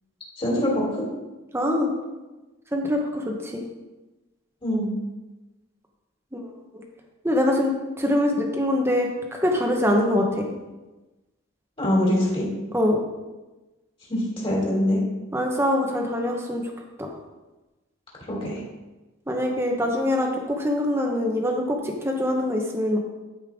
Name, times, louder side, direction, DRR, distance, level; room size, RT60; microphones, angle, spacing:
voice 1, 0.4-1.0 4.6-4.9 11.8-12.5 14.1-15.0 18.3-18.6, left 1 dB, 25° left, -4 dB, 2.9 m, -23 dB
voice 2, 1.5-1.9 2.7-3.6 6.7-6.8 7.2-10.5 12.7-13.0 15.3-16.7 17.0-17.1 19.3-23.0, left 1 dB, 10° right, 1 dB, 1.0 m, -24 dB
13.0 x 5.6 x 3.6 m, 1.1 s
head